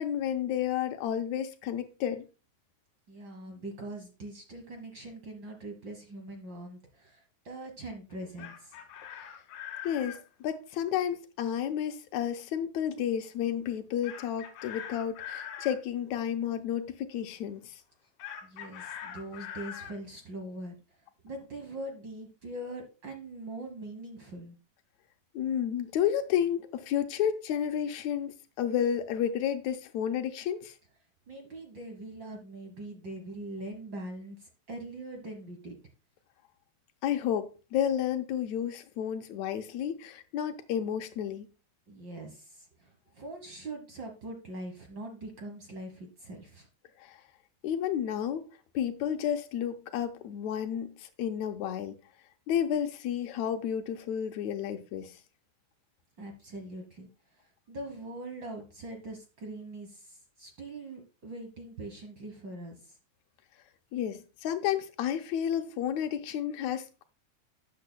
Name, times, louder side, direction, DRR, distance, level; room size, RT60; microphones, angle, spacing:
voice 1, 0.0-2.3 9.1-9.3 9.8-17.8 25.3-30.8 37.0-41.5 47.0-47.2 47.6-48.5 48.7-52.0 52.5-55.2 63.9-67.0, left 9 dB, 80° left, 2.0 m, -31 dB
voice 2, 3.1-8.8 18.4-20.7 21.2-24.6 31.3-35.8 41.9-46.7 56.2-57.1 57.4-63.0, right 1 dB, 50° right, 1.4 m, -42 dB
Chicken rooster, 8.1-10.2 14.0-15.8 18.2-20.0, left 9 dB, 65° left, 2.3 m, -42 dB
12.5 x 8.3 x 2.2 m
omnidirectional pair, 3.4 m